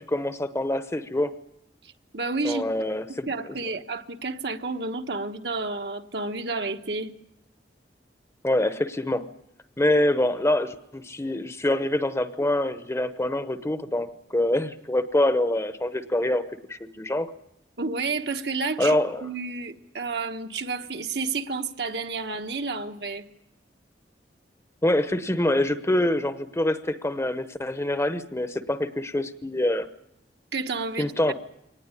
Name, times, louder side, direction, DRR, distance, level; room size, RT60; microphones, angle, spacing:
voice 1, 0.0-1.3 2.4-3.5 8.4-9.2 9.8-16.4 16.7-17.3 18.8-19.3 24.8-29.9 31.0-31.3, left 1 dB, 15° left, 0.9 m, -25 dB
voice 2, 2.1-2.7 3.3-7.1 17.8-23.3 30.5-31.3, right 3 dB, 70° right, 1.3 m, -30 dB
23.5 x 19.0 x 9.8 m
head